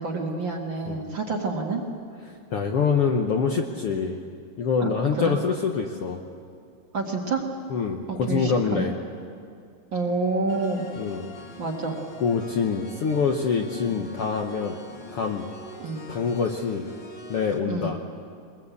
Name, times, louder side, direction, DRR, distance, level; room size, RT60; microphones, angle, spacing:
voice 1, 0.0-1.8 4.8-4.9 5.2-5.4 6.9-7.5 8.1-8.9 9.9-10.8 11.6-12.0 13.9-14.0 15.8-16.0 17.7-17.9, right 3 dB, 40° right, 1 dB, 2.1 m, -28 dB
voice 2, 2.5-4.2 4.6-6.2 7.7-8.9 11.0-11.3 12.2-14.8 15.1-15.5 16.1-16.9 17.3-18.0, left 5 dB, 60° left, 2 dB, 1.6 m, -25 dB
sound 1, 10.5-17.6, left 2 dB, 40° left, 2.4 m, -43 dB
22.5 x 21.0 x 8.3 m, 2.3 s
omnidirectional pair, 3.7 m